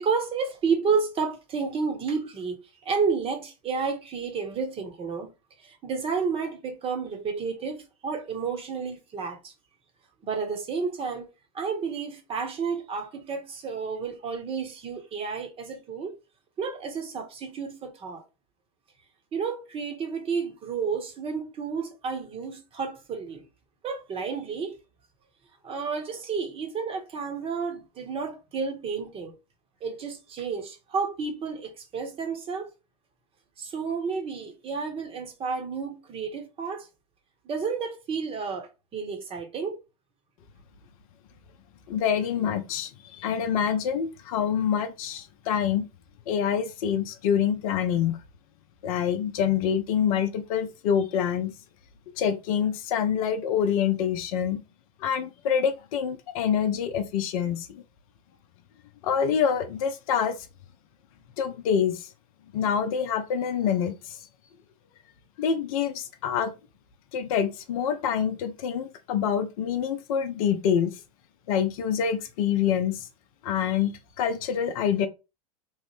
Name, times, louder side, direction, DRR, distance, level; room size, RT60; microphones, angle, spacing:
voice 1, 0.0-2.6 2.8-5.3 5.6-9.5 10.2-11.3 11.5-16.2 16.6-18.2 19.3-23.4 23.8-24.8 25.6-29.3 29.8-32.7 33.6-36.9 37.4-39.8, right 5 dB, 25° right, 0.9 m, -31 dB
voice 2, 41.9-45.9 46.3-48.2 48.8-51.5 52.2-54.6 55.0-57.8 59.0-60.4 61.4-62.1 62.5-64.2 65.4-66.5 67.1-71.0 71.5-73.1 73.4-75.1, left 8 dB, 60° left, 0.6 m, -26 dB
3.0 x 2.0 x 3.1 m
hypercardioid pair, 105°, 21 cm